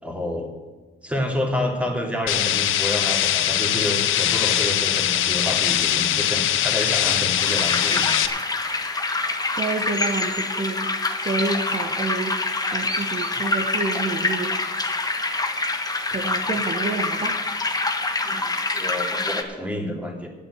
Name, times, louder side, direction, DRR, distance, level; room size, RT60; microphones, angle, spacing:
voice 1, 0.0-0.5 1.0-8.2 18.2-20.3, left 1 dB, 5° right, 1 dB, 2.8 m, -29 dB
sound 1, 2.3-8.3, left 12 dB, 85° left, 0.8 m, -22 dB
sound 2, 7.4-19.4, left 3 dB, 20° left, 1.3 m, -26 dB
voice 2, 9.6-10.9 11.2-12.4 12.7-14.6 16.1-17.4, right 3 dB, 35° right, 2 dB, 1.2 m, -28 dB
8.8 x 8.8 x 8.1 m, 1.4 s
cardioid pair, 90°, 20 cm